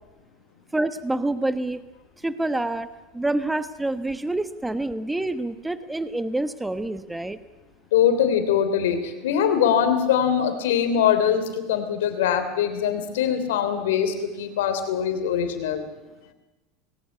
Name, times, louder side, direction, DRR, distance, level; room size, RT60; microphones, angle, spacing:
voice 1, 0.7-1.8 2.2-2.9 3.1-7.4, right 2 dB, 10° right, 12 dB, 1.1 m, -27 dB
voice 2, 7.9-15.8, left 8 dB, 75° left, 9 dB, 3.2 m, -22 dB
20.0 x 18.0 x 8.6 m, 1.1 s
hypercardioid pair, 90°, 0 cm